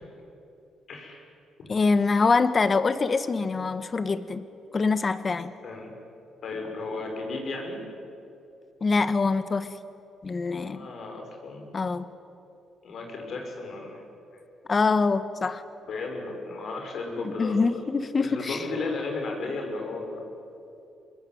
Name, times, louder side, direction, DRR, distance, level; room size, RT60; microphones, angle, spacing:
voice 1, 0.9-1.2 1.6-1.7 5.6-5.9 6.4-7.8 10.7-11.6 12.8-14.0 15.9-17.8 18.2-20.3, left 3 dB, 60° left, 2 dB, 6.6 m, -34 dB
voice 2, 1.7-4.4 4.7-5.5 8.8-9.7 10.2-10.9 11.7-12.0 14.7-15.6 17.2-18.6, left 4 dB, 35° left, 12 dB, 1.5 m, -24 dB
26.5 x 21.0 x 9.5 m, 2.7 s
cardioid pair, 90°, 0 cm